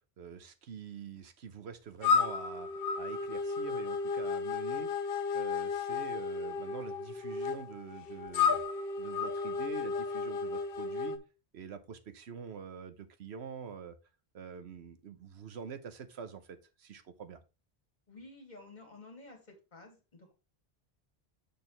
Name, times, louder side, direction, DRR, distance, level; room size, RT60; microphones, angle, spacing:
voice 1, 0.2-2.7 3.0-4.9 5.3-8.6 9.0-11.2 11.5-14.0 14.3-17.4, right 7 dB, 85° right, 10 dB, 1.2 m, -46 dB
sound 1, 2.0-11.2, left 5 dB, 65° left, 0.9 m, -33 dB
voice 2, 18.1-20.3, left 2 dB, 45° left, 3 dB, 2.2 m, -52 dB
6.6 x 6.3 x 3.2 m, 0.29 s
omnidirectional pair, 1.1 m